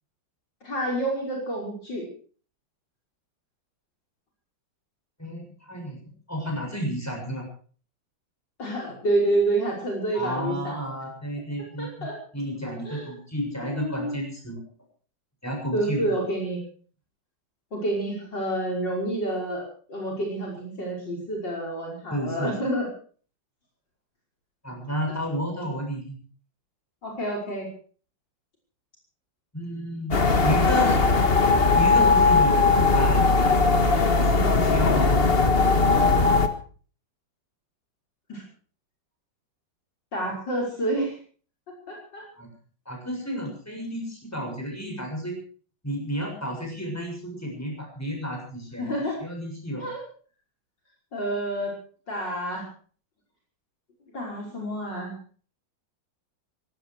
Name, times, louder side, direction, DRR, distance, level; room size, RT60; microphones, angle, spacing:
voice 1, 0.6-2.0 8.6-10.8 11.8-12.1 12.7-13.1 13.6-14.2 15.7-16.6 17.7-22.9 27.0-27.7 38.3-38.4 40.1-41.2 41.9-42.2 48.8-49.2 49.8-50.0 51.1-51.7 52.1-52.7 54.1-55.1, right 1 dB, 65° left, -2 dB, 6.3 m, -28 dB
voice 2, 5.2-7.5 10.1-12.1 12.3-14.6 15.4-16.0 22.1-22.5 24.6-26.2 29.5-31.0 31.8-33.2 34.3-35.6 42.4-42.5 42.9-45.4 45.8-48.9 49.2-49.9, equal, 5° left, 1 dB, 7.0 m, -32 dB
sound 1, 30.1-36.5, left 3 dB, 35° left, 1.6 m, -19 dB
18.0 x 17.0 x 4.8 m, 0.43 s
omnidirectional pair, 2.1 m